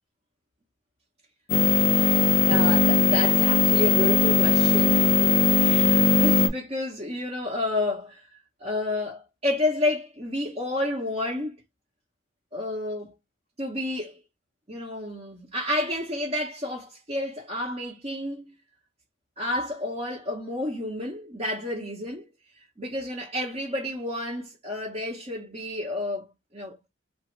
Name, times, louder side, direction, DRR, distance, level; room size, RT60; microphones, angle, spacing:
sound 1, 1.5-6.5, left 4 dB, 40° left, 0.6 m, -19 dB
voice 1, 2.4-5.1 5.6-8.3 8.6-11.6 12.5-13.1 13.6-14.2 14.7-18.5 19.4-22.3 22.8-26.3 26.5-26.8, left 1 dB, 30° right, 0.9 m, -30 dB
3.1 x 2.0 x 3.1 m
head